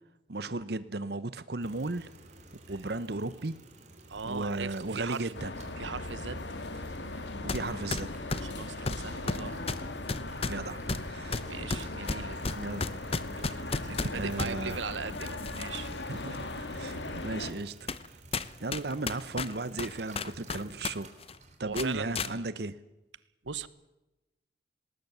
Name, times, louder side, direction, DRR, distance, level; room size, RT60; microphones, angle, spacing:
voice 1, 0.3-2.1 2.7-3.5 4.2-5.5 7.4-8.1 10.5-11.5 12.5-13.0 14.1-14.8 16.1-17.9 18.6-21.1 21.6-22.8, right 2 dB, 60° right, 14 dB, 0.9 m, -35 dB
sound 1, 1.6-21.6, right 2 dB, 40° right, 3.5 m, -53 dB
voice 2, 4.1-5.3 5.8-6.4 8.4-9.6 11.5-12.6 13.4-15.9 21.6-22.5 23.4-23.7, right 5 dB, 90° right, 16 dB, 1.1 m, -39 dB
sound 2, 5.3-17.5, left 2 dB, 75° left, 2.1 m, -39 dB
sound 3, 7.5-7.6 7.9-14.5 15.2-15.9 16.3-16.4 17.2-17.3 17.9-18.1 18.3-20.9 21.2-21.4 21.7-22.3, left 3 dB, 30° left, 0.9 m, -33 dB
19.5 x 19.0 x 8.1 m, 0.98 s
head